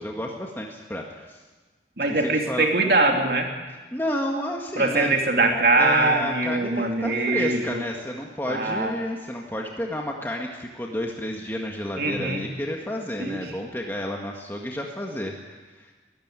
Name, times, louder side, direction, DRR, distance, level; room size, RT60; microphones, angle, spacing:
voice 1, 0.0-1.4 2.1-2.7 3.7-5.1 5.7-15.9, left 1 dB, 15° left, 0 dB, 1.7 m, -31 dB
voice 2, 2.0-3.5 4.8-7.8 8.5-8.9 12.0-12.4 13.2-13.4, right 2 dB, 60° right, 2 dB, 2.8 m, -22 dB
22.5 x 14.5 x 9.0 m, 1.3 s
head